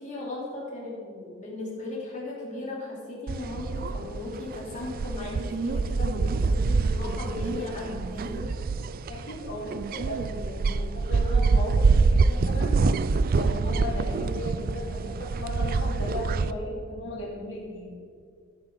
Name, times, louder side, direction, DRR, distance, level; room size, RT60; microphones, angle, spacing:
voice 1, 0.0-8.5, left 2 dB, 40° left, -4 dB, 3.1 m, -36 dB
sound 1, 3.3-16.5, right 4 dB, 45° right, 0.4 m, -26 dB
voice 2, 9.1-12.8 13.3-17.9, left 1 dB, 65° left, -2 dB, 2.8 m, -36 dB
12.5 x 9.5 x 3.9 m, 2.2 s
head